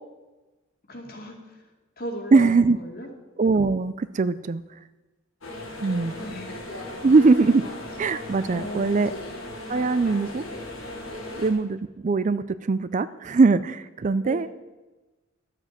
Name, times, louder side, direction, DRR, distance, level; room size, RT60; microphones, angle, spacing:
voice 1, 0.9-1.7 2.0-3.1 6.1-6.5 8.5-9.1 14.2-14.5, left 1 dB, 50° left, 2 dB, 2.3 m, -37 dB
voice 2, 2.3-2.8 3.4-4.6 5.8-6.2 7.0-7.7 8.0-9.1 9.7-10.4 11.4-14.5, right 4 dB, 40° right, 15 dB, 0.4 m, -21 dB
sound 1, 5.4-11.5, left 1 dB, 90° left, 3.2 m, -37 dB
12.5 x 7.6 x 7.4 m, 1.1 s
head